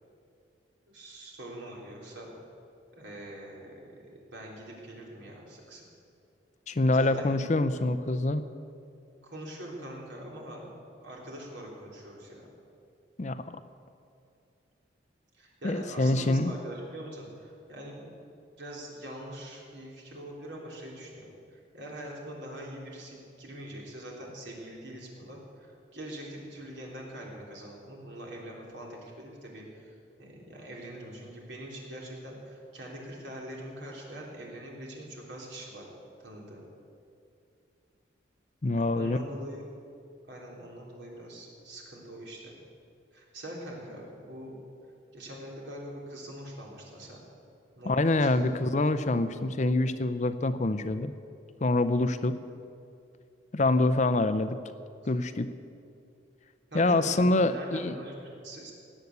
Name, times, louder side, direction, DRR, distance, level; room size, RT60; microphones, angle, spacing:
voice 1, 0.9-2.3 2.9-5.8 6.9-7.3 9.2-12.5 15.3-18.1 18.6-35.9 36.2-36.7 38.7-39.6 40.3-42.5 43.1-44.6 45.1-47.2 47.8-48.6 56.7-58.7, right 1 dB, 65° right, -2 dB, 3.5 m, -43 dB
voice 2, 6.7-8.4 13.2-13.6 15.6-16.5 38.6-39.2 47.9-51.1 51.6-52.4 53.5-54.6 55.0-55.5 56.7-57.9, left 2 dB, 40° left, 12 dB, 0.5 m, -25 dB
19.0 x 8.1 x 8.2 m, 2.5 s
head